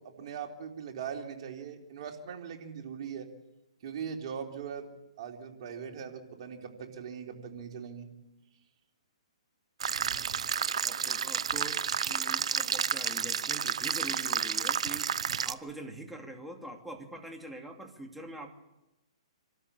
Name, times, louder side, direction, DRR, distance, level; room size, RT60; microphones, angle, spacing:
voice 1, 0.0-3.3 3.8-4.9 5.2-8.1 10.0-10.4, right 7 dB, 50° right, 2 dB, 3.6 m, -40 dB
sound 1, 9.8-15.5, right 7 dB, 70° right, 0.8 m, -31 dB
voice 2, 10.8-18.6, right 1 dB, 5° right, 2 dB, 2.6 m, -44 dB
26.5 x 13.0 x 8.8 m, 0.98 s
hypercardioid pair, 140°, 3 cm